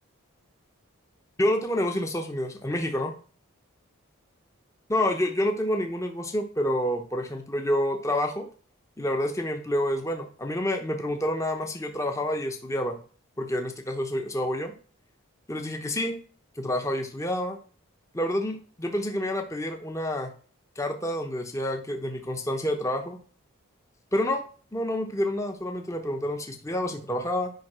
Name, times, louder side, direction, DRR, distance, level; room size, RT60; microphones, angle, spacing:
voice 1, 1.4-3.1 4.9-8.5 9.0-13.0 13.4-14.7 15.5-16.2 16.6-17.6 18.1-20.3 20.8-23.2 24.1-24.4 24.7-27.5, left 1 dB, 15° left, 4 dB, 0.9 m, -28 dB
9.4 x 5.2 x 6.1 m, 0.41 s
head